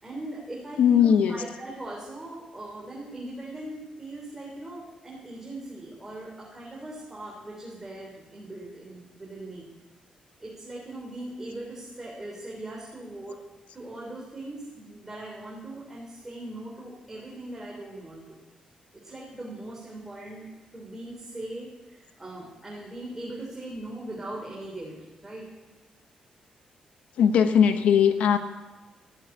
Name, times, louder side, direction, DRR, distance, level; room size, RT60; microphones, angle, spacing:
voice 1, 0.0-9.7 10.4-13.4 13.7-18.4 18.9-20.5 20.7-25.5, right 1 dB, 15° right, -3 dB, 3.6 m, -40 dB
voice 2, 0.8-1.4 27.2-28.4, left 8 dB, 90° left, 7 dB, 1.1 m, -19 dB
16.0 x 8.2 x 9.9 m, 1.2 s
cardioid pair, 115°, 2 cm